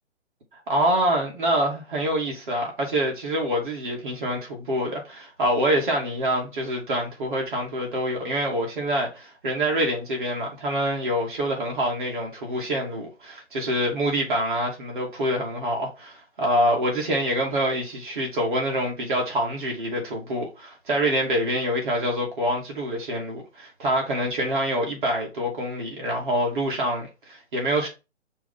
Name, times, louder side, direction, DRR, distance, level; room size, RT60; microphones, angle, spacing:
voice 1, 0.7-27.9, equal, 45° right, 2.6 m, -26 dB
6.0 x 3.5 x 5.6 m
hypercardioid pair, 170°, 36 cm